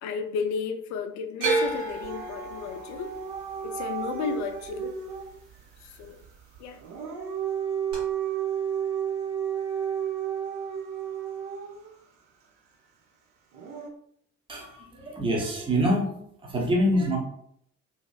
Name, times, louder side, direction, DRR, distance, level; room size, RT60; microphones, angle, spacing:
voice 1, 0.0-3.1 3.6-5.0 5.8-6.2 6.6-6.8, left 5 dB, 50° left, 7 dB, 0.5 m, -33 dB
sound 1, 1.4-5.6 5.9-6.6 7.9-8.0, right 3 dB, 80° right, 1.0 m, -31 dB
Dog / Siren, 2.0-5.3 6.7-11.9 13.5-13.9, right 8 dB, 60° right, 0.7 m, -32 dB
voice 2, 14.5-16.1 16.4-17.2, equal, 15° right, -1 dB, 0.8 m, -25 dB
2.9 x 2.8 x 2.4 m, 0.70 s
figure-of-eight pair, 50°, 38 cm